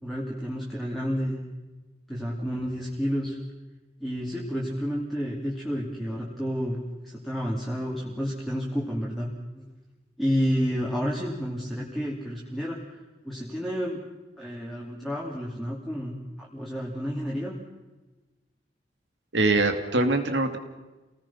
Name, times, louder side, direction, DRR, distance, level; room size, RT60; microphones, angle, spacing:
voice 1, 0.0-1.4 2.1-3.4 4.0-9.7 10.2-12.8 13.2-14.0 14.4-17.5, equal, ahead, -5 dB, 2.8 m, -30 dB
voice 2, 19.3-20.6, right 2 dB, 80° right, 6 dB, 2.6 m, -23 dB
29.0 x 19.0 x 5.8 m, 1.2 s
head